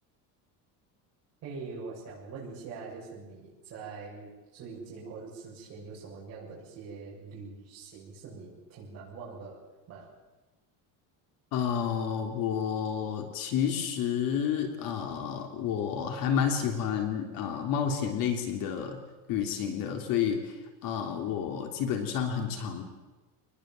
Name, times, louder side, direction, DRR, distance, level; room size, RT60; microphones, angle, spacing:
voice 1, 1.4-9.6 9.9-10.1, right 4 dB, 40° right, -6 dB, 7.6 m, -43 dB
voice 2, 11.5-19.0 19.3-20.6 20.8-22.8, left 8 dB, 55° left, 4 dB, 3.5 m, -30 dB
26.0 x 20.5 x 7.8 m, 1.2 s
cardioid pair, 165°, 40 cm